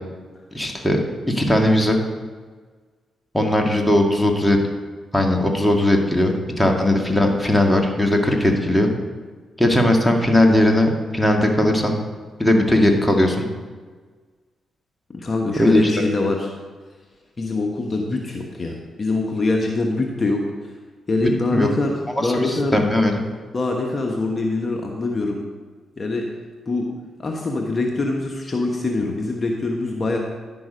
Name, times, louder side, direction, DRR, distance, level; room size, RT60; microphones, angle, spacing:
voice 1, 0.5-2.0 3.3-4.6 5.1-8.9 9.6-12.0 12.4-13.4 15.6-15.9 21.2-21.7 22.2-23.2, left 1 dB, 10° left, 2 dB, 1.9 m, -18 dB
voice 2, 15.1-16.5 17.4-20.5 21.1-22.8 23.5-25.4 26.0-26.3 26.7-26.9 27.2-30.2, left 2 dB, 40° left, 1 dB, 1.2 m, -23 dB
10.5 x 6.1 x 5.1 m, 1.4 s
supercardioid pair, 55°, 0 cm